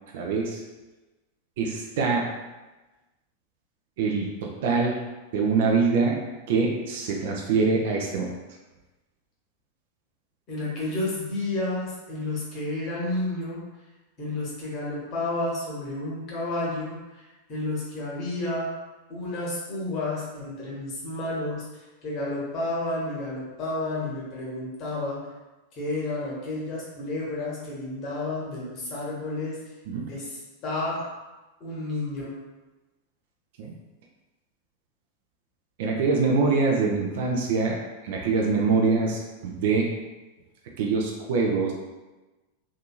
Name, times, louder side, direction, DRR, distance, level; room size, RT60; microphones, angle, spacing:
voice 1, 0.1-0.6 1.6-2.3 4.0-5.0 5.3-6.2 6.5-8.3 29.9-30.1 33.6-33.7 35.8-37.8 38.0-39.9 40.8-41.7, right 4 dB, 55° right, 0 dB, 0.4 m, -24 dB
voice 2, 10.5-13.6 14.2-17.2 17.5-18.7 19.1-21.7 22.0-25.2 25.8-29.6 30.1-31.1 31.6-32.3, left 2 dB, 35° left, -5 dB, 1.0 m, -31 dB
2.8 x 2.6 x 2.2 m, 1.1 s
figure-of-eight pair, 90°, 0 cm